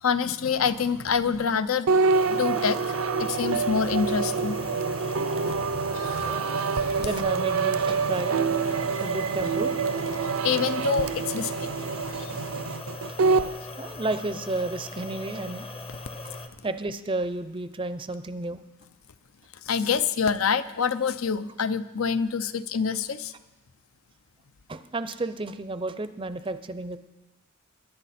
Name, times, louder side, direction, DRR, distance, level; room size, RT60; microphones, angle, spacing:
voice 1, 0.0-1.9 2.3-4.6 5.4-5.6 5.9-7.1 8.9-9.0 10.2-11.7 12.1-12.3 19.7-23.3, left 6 dB, 80° left, 13 dB, 0.6 m, -27 dB
sound 1, 1.9-13.5, right 4 dB, 75° right, 0.6 m, -26 dB
sound 2, 2.1-16.5, left 2 dB, 25° left, 0.7 m, -40 dB
voice 2, 7.0-8.4 9.0-9.9 13.1-13.2 13.8-15.7 16.6-18.6 24.7-27.0, right 2 dB, 25° right, 11 dB, 0.5 m, -32 dB
22.0 x 10.5 x 4.3 m, 1.1 s
head